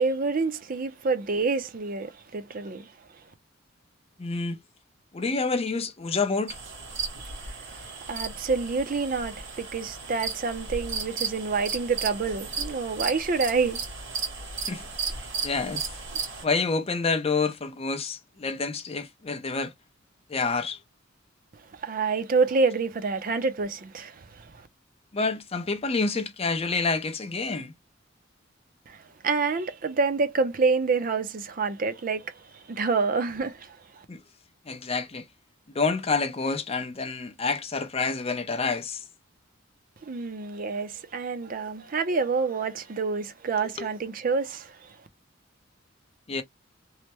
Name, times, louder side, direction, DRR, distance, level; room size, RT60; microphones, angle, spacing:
voice 1, 0.0-2.9 7.2-13.8 21.7-24.5 28.9-34.0 40.0-44.9, right 4 dB, 45° right, 0.5 m, -28 dB
voice 2, 4.2-4.6 5.1-6.6 14.6-14.8 15.4-15.9 16.4-19.7 20.3-20.8 25.1-27.7 34.1-34.2 34.7-35.3 35.7-39.0 43.8-43.9 46.3-46.4, left 4 dB, 30° left, 0.5 m, -28 dB
sound 1, 6.5-16.4, right 5 dB, 75° right, 1.5 m, -35 dB
3.2 x 2.0 x 2.9 m
head